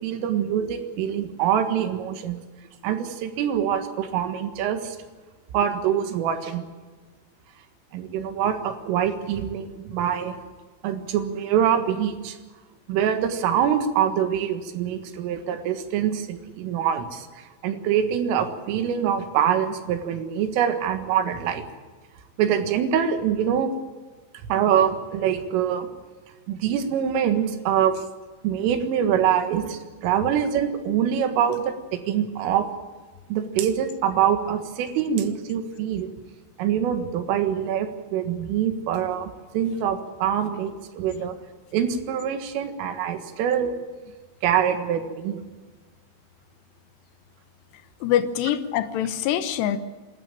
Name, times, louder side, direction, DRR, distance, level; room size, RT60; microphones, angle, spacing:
voice 1, 0.0-2.4 2.8-5.0 5.5-6.6 7.9-10.4 10.8-12.4 12.9-21.7 22.4-23.7 24.5-25.9 26.5-28.0 28.4-32.7 33.3-36.1 36.6-41.4 41.7-43.8 44.4-45.4, right 9 dB, 85° right, 8 dB, 4.2 m, -24 dB
voice 2, 48.0-49.8, left 10 dB, 70° left, 11 dB, 2.8 m, -24 dB
26.5 x 13.0 x 9.0 m, 1.3 s
omnidirectional pair, 5.6 m